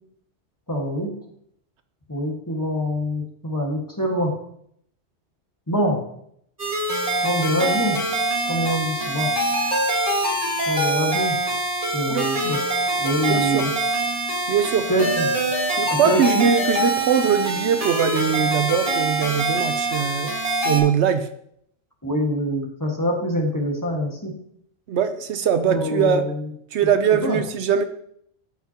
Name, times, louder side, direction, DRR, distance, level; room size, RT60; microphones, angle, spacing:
voice 1, 0.7-1.1 2.1-4.3 5.7-6.0 7.2-8.0 8.5-9.3 10.7-11.4 11.9-12.6 13.0-13.7 14.9-15.2 16.0-16.5 22.0-24.3 25.7-26.4 27.2-27.4, equal, 15° left, -1 dB, 1.6 m, -24 dB
sound 1, 6.6-20.8, right 1 dB, 30° right, 2.4 m, -24 dB
voice 2, 12.1-12.6 13.3-13.7 14.5-14.8 15.8-21.3 24.9-26.2 26.7-27.8, right 8 dB, 75° right, 9 dB, 0.9 m, -22 dB
14.0 x 5.8 x 2.9 m, 0.69 s
omnidirectional pair, 1.2 m